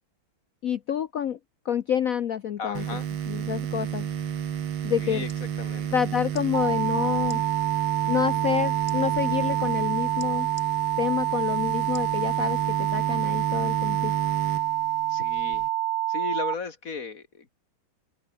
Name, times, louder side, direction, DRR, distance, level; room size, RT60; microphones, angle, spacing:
voice 1, 0.6-1.4 1.6-2.8 3.3-4.1 4.8-5.2 5.9-7.4 8.1-10.5 11.0-14.1, left 9 dB, 70° left, 0.8 m, -28 dB
voice 2, 2.6-3.1 5.0-5.3 5.6-5.9 15.1-15.7 16.1-17.5, left 5 dB, 40° left, 2.5 m, -35 dB
sound 1, 2.7-15.7, right 9 dB, 70° right, 2.2 m, -32 dB
sound 2, 5.2-5.4 6.3-6.5 7.2-7.4 8.9-9.0 10.2-10.7 11.9-12.2 12.7-12.8, left 2 dB, 20° left, 3.2 m, -47 dB
sound 3, 6.5-16.5, right 16 dB, 90° right, 1.6 m, -27 dB
open air
omnidirectional pair, 2.4 m